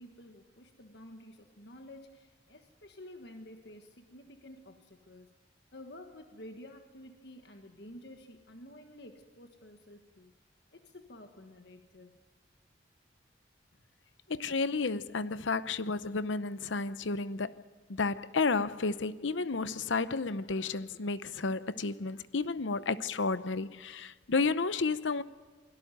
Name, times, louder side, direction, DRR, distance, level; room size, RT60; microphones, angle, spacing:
voice 1, 0.0-5.3 5.7-10.3 10.7-12.2, left 1 dB, 60° left, 1.6 m, -51 dB
voice 2, 14.3-17.5 17.9-25.2, left 4 dB, 90° left, 0.8 m, -32 dB
24.5 x 17.5 x 9.3 m
head